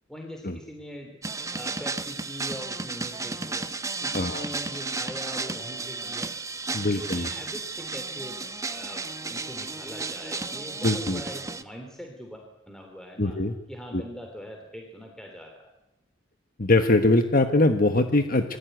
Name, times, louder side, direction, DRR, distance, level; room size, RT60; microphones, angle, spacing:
voice 1, 0.1-1.2 1.5-3.7 4.0-6.3 6.8-13.4 13.7-15.7, equal, 5° left, 2 dB, 3.3 m, -42 dB
sound 1, 1.2-11.6, right 3 dB, 15° right, 1.1 m, -33 dB
voice 2, 4.1-4.4 6.7-7.3 10.8-11.2 13.2-13.5 13.9-14.0 16.6-18.6, left 2 dB, 45° left, 7 dB, 1.3 m, -22 dB
27.5 x 20.0 x 9.3 m, 0.98 s
head